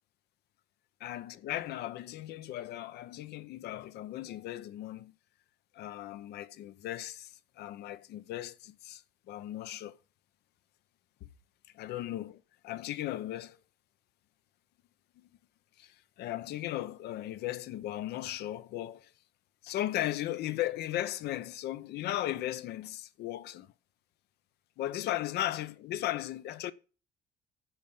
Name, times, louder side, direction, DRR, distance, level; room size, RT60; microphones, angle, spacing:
voice 1, 1.0-5.1 5.7-9.0 9.3-10.0 11.2-11.3 11.7-13.6 15.8-19.1 19.6-23.7 24.8-26.7, left 14 dB, 75° left, 0.8 m, -36 dB
10.0 x 5.3 x 7.2 m
cardioid pair, 110°, 17 cm